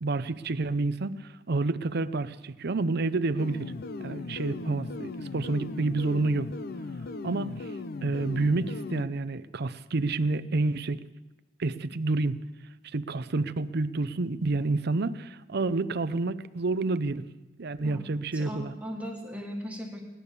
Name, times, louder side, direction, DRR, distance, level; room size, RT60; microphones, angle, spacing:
voice 1, 0.0-3.7 4.0-6.5 7.2-7.7 8.0-11.0 11.6-12.4 12.8-17.2 17.6-18.7, right 3 dB, 55° right, 13 dB, 0.6 m, -29 dB
sound 1, 3.4-9.0, left 3 dB, 50° left, 0.6 m, -37 dB
voice 2, 18.3-20.0, equal, 5° right, 0 dB, 1.7 m, -38 dB
18.0 x 11.5 x 6.8 m, 1.1 s
head